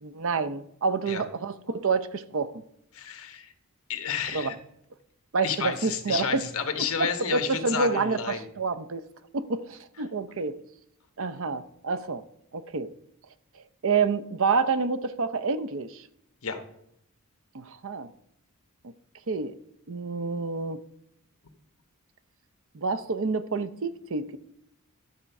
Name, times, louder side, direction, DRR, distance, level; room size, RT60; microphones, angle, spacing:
voice 1, 0.0-2.5 4.3-4.5 5.3-6.4 7.0-9.0 9.3-10.6 11.2-12.2 12.5-12.9 13.8-16.0 17.5-18.1 19.3-19.6 19.9-20.8 22.7-24.4, right 4 dB, 60° right, 0.6 m, -28 dB
voice 2, 2.9-3.5 3.9-4.6 5.4-8.4 16.4-16.6, left 6 dB, 70° left, 1.2 m, -31 dB
12.5 x 4.4 x 5.8 m
head